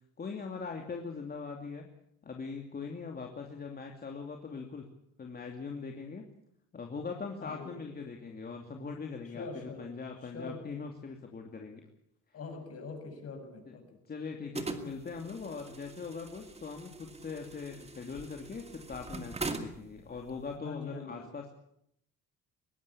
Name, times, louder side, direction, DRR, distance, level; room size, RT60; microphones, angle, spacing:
voice 1, 0.2-1.9 2.2-4.8 5.2-6.3 6.7-11.8 12.3-12.4 13.7-21.5, left 5 dB, 30° left, 3 dB, 2.7 m, -41 dB
voice 2, 7.4-7.7 9.3-9.9 10.2-10.6 12.3-13.8 15.0-15.2 20.5-21.3, left 4 dB, 45° left, 5 dB, 7.2 m, -43 dB
sound 1, 14.5-20.5, right 3 dB, 20° right, 2.3 m, -42 dB
21.5 x 17.0 x 8.6 m, 0.72 s
cardioid pair, 115°, 33 cm